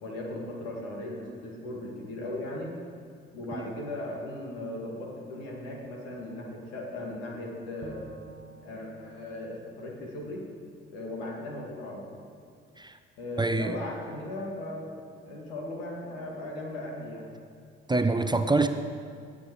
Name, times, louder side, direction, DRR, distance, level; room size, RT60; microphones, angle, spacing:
voice 1, 0.0-2.8 3.3-8.0 8.6-10.5 10.9-12.2 13.2-15.0 15.2-17.3, left 1 dB, 75° left, -1 dB, 2.1 m, -37 dB
Bowed string instrument, 7.8-11.1, right 4 dB, 40° right, 1.1 m, -51 dB
voice 2, 13.4-13.8 17.9-18.7, right 3 dB, 15° right, 8 dB, 0.7 m, -25 dB
18.5 x 7.3 x 4.7 m, 2.2 s
figure-of-eight pair, 45°, 30 cm